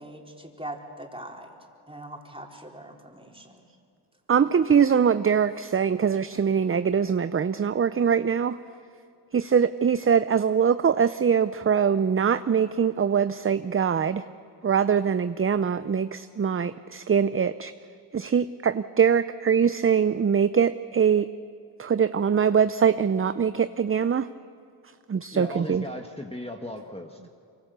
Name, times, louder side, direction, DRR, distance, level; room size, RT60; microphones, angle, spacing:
voice 1, 0.0-1.5 1.9-3.6, right 1 dB, 10° right, 0 dB, 4.1 m, -41 dB
voice 2, 4.3-8.6 9.3-14.3 14.6-17.7 18.1-21.3 21.8-24.3 25.1-25.8, right 7 dB, 25° right, 13 dB, 0.6 m, -23 dB
voice 3, 25.3-27.3, left 1 dB, 10° left, 3 dB, 1.6 m, -37 dB
24.5 x 24.5 x 6.8 m, 2.4 s
cardioid pair, 50°, 50 cm